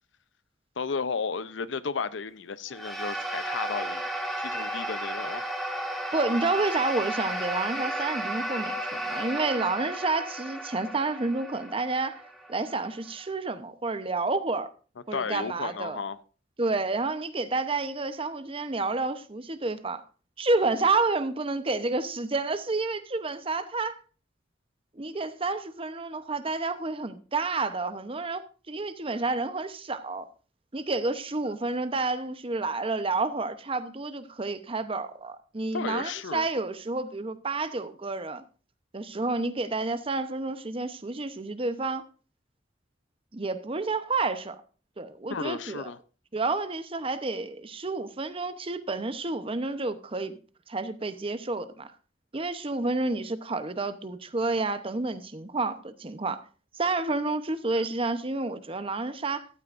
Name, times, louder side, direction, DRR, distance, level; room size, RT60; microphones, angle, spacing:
voice 1, 0.8-4.1 4.4-5.5 15.1-16.2 35.7-36.5 45.3-46.0, left 5 dB, 85° left, 0.7 m, -33 dB
sound 1, 2.7-13.3, right 1 dB, ahead, 2.5 m, -33 dB
voice 2, 6.1-12.2 12.5-14.7 15.1-16.0 16.6-20.0 20.4-24.0 25.0-30.3 30.7-38.4 38.9-42.0 43.3-44.6 45.0-45.9 46.3-50.4 50.7-51.9 52.3-56.4 56.7-59.5, right 3 dB, 30° right, 0.9 m, -30 dB
14.0 x 12.5 x 2.6 m
head